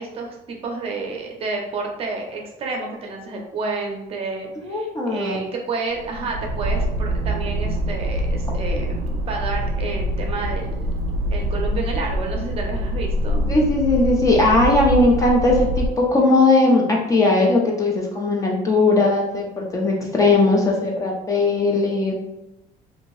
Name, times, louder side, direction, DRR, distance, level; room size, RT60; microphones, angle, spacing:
voice 1, 0.0-10.9 11.3-13.4, right 3 dB, 35° right, 0 dB, 0.6 m, -30 dB
voice 2, 4.6-5.4 13.5-22.1, left 2 dB, 20° left, -1 dB, 0.4 m, -18 dB
sound 1, 5.9-15.9, equal, 85° right, 0.4 m, -25 dB
2.7 x 2.6 x 3.0 m, 0.89 s
cardioid pair, 160°, 16 cm